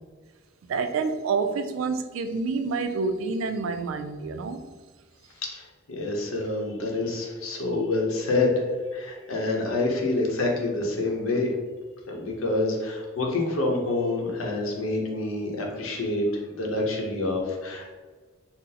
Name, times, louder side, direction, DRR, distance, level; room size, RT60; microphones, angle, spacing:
voice 1, 0.7-4.6, right 4 dB, 75° right, 0.3 m, -28 dB
voice 2, 5.9-8.7 8.9-11.5 12.1-16.3 16.6-17.9, left 2 dB, 90° left, 0.7 m, -27 dB
3.8 x 2.0 x 2.8 m
head